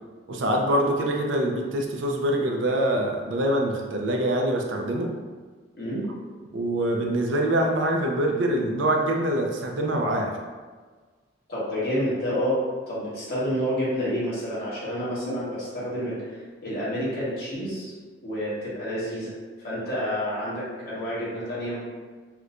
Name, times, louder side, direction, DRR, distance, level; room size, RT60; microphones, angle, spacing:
voice 1, 0.3-5.1 6.5-10.3 15.2-15.4, right 1 dB, 85° right, 1 dB, 0.5 m, -24 dB
voice 2, 11.5-12.6 12.9-17.9 18.2-19.3 19.6-21.8, equal, 55° left, -10 dB, 1.5 m, -29 dB
4.3 x 2.2 x 2.5 m, 1.4 s
head